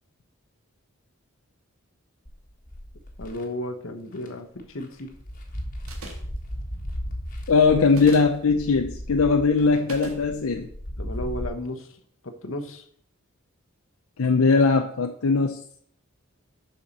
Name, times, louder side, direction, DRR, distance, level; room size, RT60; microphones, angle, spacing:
sound 1, 2.2-3.4 4.1-4.3 4.6-11.5, equal, 40° left, 1.6 m, -36 dB
voice 1, 3.2-5.1 9.6-9.9 11.0-11.9 12.2-12.8, left 1 dB, 65° left, 6 dB, 1.1 m, -34 dB
sound 2, 5.9-6.4 7.9-8.4 9.9-10.2, right 2 dB, 80° right, 1.9 m, -39 dB
voice 2, 7.5-10.7 14.2-15.6, left 4 dB, 85° left, 5 dB, 0.6 m, -20 dB
7.1 x 5.8 x 6.6 m, 0.65 s
head